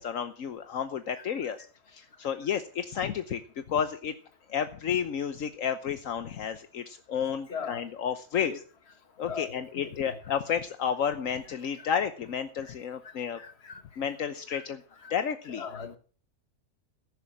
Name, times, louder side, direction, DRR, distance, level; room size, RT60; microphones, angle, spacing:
voice 1, 0.0-3.4 3.7-4.1 4.5-8.6 9.2-13.4 14.0-14.8 15.1-15.6, left 8 dB, 70° left, 1.3 m, -31 dB
voice 2, 7.5-7.9 8.4-8.6 9.2-10.2 11.8-11.9 12.6-12.7 13.0-13.8 14.5-14.7 15.0-15.1 15.5-16.0, left 6 dB, 50° left, 1.8 m, -40 dB
15.0 x 10.5 x 6.0 m
omnidirectional pair, 1.4 m